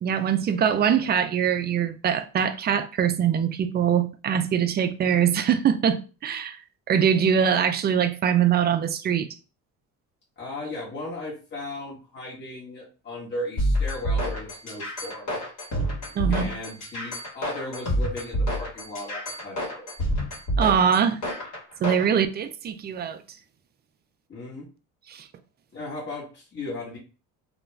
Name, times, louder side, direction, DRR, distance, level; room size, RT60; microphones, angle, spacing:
voice 1, 0.0-9.4 16.1-16.5 20.6-21.2 21.8-23.4 25.1-25.3, right 8 dB, 30° right, 0.3 m, -23 dB
voice 2, 10.4-15.3 16.3-19.9 24.3-24.7 25.7-27.0, left 1 dB, 30° left, 1.1 m, -36 dB
sound 1, 13.6-22.1, equal, 55° left, 1.3 m, -28 dB
2.4 x 2.2 x 3.1 m
cardioid pair, 90°, 36 cm